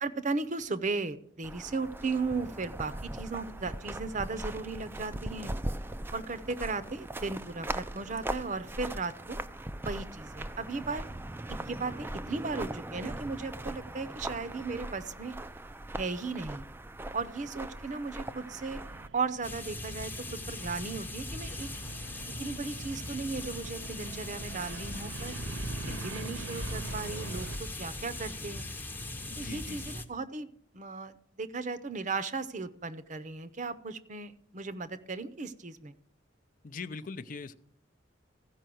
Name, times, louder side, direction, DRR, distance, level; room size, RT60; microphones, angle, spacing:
voice 1, 0.0-5.5 6.1-9.4 9.8-11.1 11.5-15.3 15.9-16.6 17.1-18.8 19.1-21.7 22.4-25.4 25.8-28.7 29.4-35.9, right 4 dB, 40° right, 12 dB, 0.7 m, -36 dB
sound 1, 1.4-19.1, right 1 dB, 10° right, 0.4 m, -40 dB
sound 2, 18.2-27.6, right 5 dB, 75° right, 0.4 m, -46 dB
sound 3, 19.4-30.0, left 1 dB, 10° left, 0.8 m, -39 dB
voice 2, 29.3-29.9 36.6-37.6, left 4 dB, 45° left, 11 dB, 0.5 m, -41 dB
14.5 x 5.5 x 7.6 m, 0.70 s
head